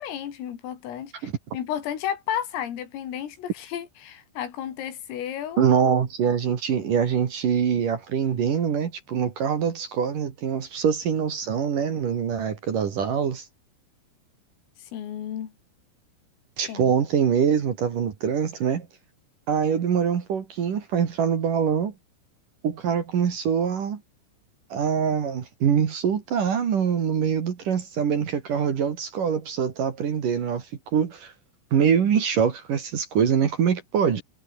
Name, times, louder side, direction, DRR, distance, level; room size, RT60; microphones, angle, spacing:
voice 1, 0.0-5.7 14.9-15.5 16.7-16.9, left 10 dB, 90° left, 5.6 m, -33 dB
voice 2, 5.6-13.4 16.6-18.9 19.5-21.9 22.6-24.0 24.7-30.7 30.9-31.3 31.7-34.2, right 7 dB, 50° right, 3.3 m, -24 dB
omnidirectional pair, 5.8 m